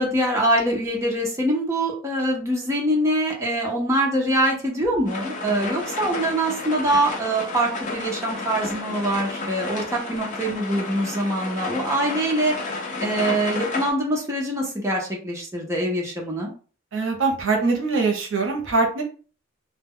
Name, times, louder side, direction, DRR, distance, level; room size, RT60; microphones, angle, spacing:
voice 1, 0.0-12.6 13.0-16.5, right 1 dB, 15° right, -2 dB, 0.6 m, -24 dB
sound 1, 5.1-13.9, left 3 dB, 40° left, 0.6 m, -32 dB
voice 2, 16.9-19.0, right 4 dB, 75° right, 1 dB, 0.6 m, -22 dB
2.1 x 2.1 x 3.5 m, 0.39 s
head